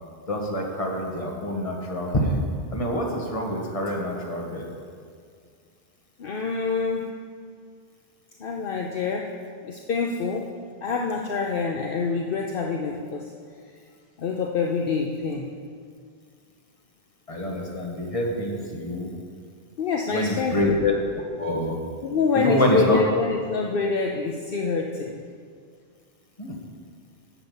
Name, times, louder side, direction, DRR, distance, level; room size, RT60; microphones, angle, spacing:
voice 1, 0.3-2.4 2.7-4.7 17.3-19.1 20.1-20.9 21.4-21.7 22.3-23.0 26.4-26.5, left 1 dB, 35° left, -1 dB, 1.7 m, -26 dB
voice 2, 6.2-7.1 8.4-9.3 9.6-10.5 10.8-13.3 14.2-15.5 19.8-20.8 22.0-25.2, left 4 dB, 65° left, 1 dB, 0.9 m, -26 dB
9.9 x 6.9 x 7.1 m, 2.1 s
omnidirectional pair, 1.0 m